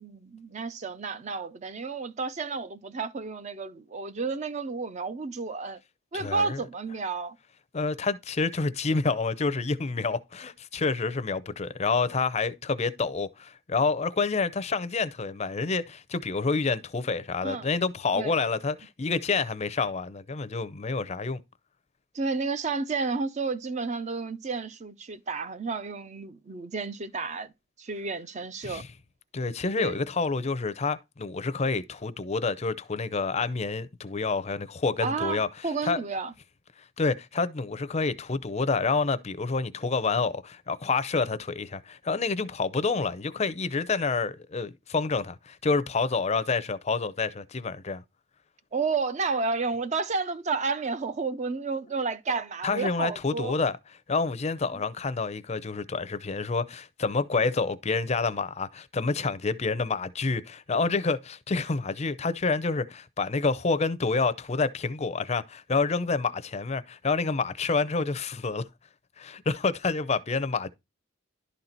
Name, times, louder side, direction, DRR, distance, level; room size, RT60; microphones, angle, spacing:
voice 1, 0.0-5.8 6.1-7.4 17.4-17.7 18.1-18.4 22.1-27.5 27.8-28.8 29.8-30.0 35.0-36.3 48.7-53.6, right 4 dB, 35° right, 0.5 m, -31 dB
voice 2, 6.1-6.6 7.7-21.4 28.6-28.9 29.3-35.5 35.8-36.0 37.0-48.0 52.6-53.8 54.1-68.6 69.2-70.7, left 4 dB, 30° left, 0.5 m, -28 dB
11.5 x 4.0 x 4.4 m
head